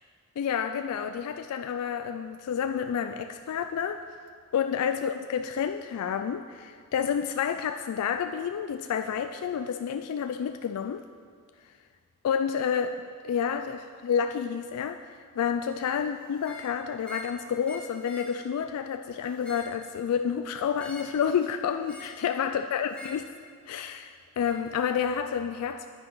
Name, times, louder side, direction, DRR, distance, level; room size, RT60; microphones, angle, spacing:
voice 1, 0.4-4.0 4.5-11.0 12.2-12.9 13.2-23.3 23.7-25.9, left 7 dB, 80° left, 8 dB, 0.3 m, -29 dB
sound 1, 16.4-16.7 17.0-17.4 17.6-18.3 19.2-19.8 20.8-21.2 21.9-22.2 22.9-23.3 24.5-24.6, left 1 dB, 5° left, 0.9 m, -45 dB
9.8 x 8.9 x 3.9 m, 2.1 s
head